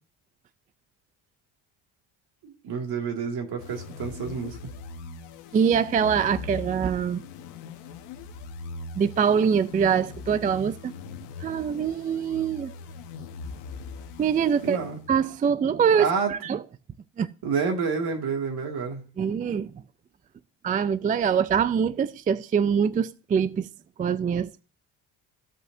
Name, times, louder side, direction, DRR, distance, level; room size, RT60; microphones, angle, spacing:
voice 1, 2.4-4.6 14.6-15.0 16.0-16.3 17.4-19.0, right 5 dB, 65° right, 2.2 m, -29 dB
sound 1, 3.6-15.3, left 4 dB, 85° left, 0.9 m, -41 dB
voice 2, 5.5-7.2 9.0-10.9 11.4-12.7 14.2-14.8 15.1-16.6 17.2-17.3 19.2-19.7 20.6-23.7 24.0-24.6, right 7 dB, 20° right, 0.3 m, -24 dB
15.5 x 5.3 x 2.6 m
supercardioid pair, 80°, 41 cm